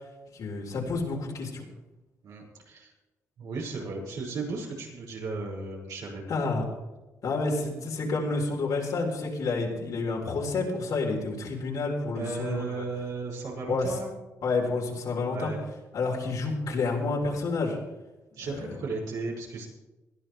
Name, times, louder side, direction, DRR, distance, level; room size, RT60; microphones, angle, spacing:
voice 1, 0.3-1.6 6.3-6.6 7.2-12.8 13.7-13.9 14.4-15.5 15.9-17.8 18.5-18.6, left 3 dB, 75° left, -1 dB, 4.0 m, -29 dB
voice 2, 2.2-2.9 3.4-6.3 12.1-14.1 15.3-15.6 18.3-19.7, right 3 dB, 85° right, -4 dB, 6.0 m, -35 dB
21.0 x 13.0 x 3.4 m, 1.1 s
cardioid pair, 75°, 6 cm